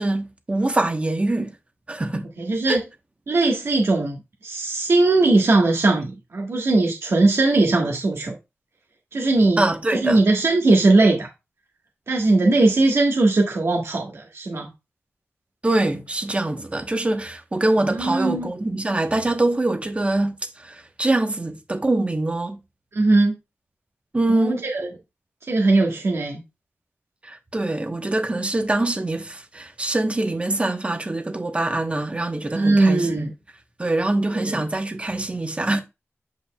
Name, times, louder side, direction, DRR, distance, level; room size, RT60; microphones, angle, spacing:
voice 1, 0.0-1.5 1.9-2.3 2.7-2.8 9.6-10.2 15.6-22.6 24.1-24.7 27.2-33.3 33.8-35.8, right 2 dB, 25° right, 1.1 m, -24 dB
voice 2, 2.4-2.8 3.3-8.3 9.1-9.6 9.9-11.3 12.1-14.7 17.8-18.5 22.9-23.3 24.3-24.9 25.5-26.4 32.5-33.3 34.3-34.6, right 2 dB, 70° right, 1.5 m, -19 dB
8.4 x 5.3 x 2.3 m
wide cardioid pair, 95°, 5 cm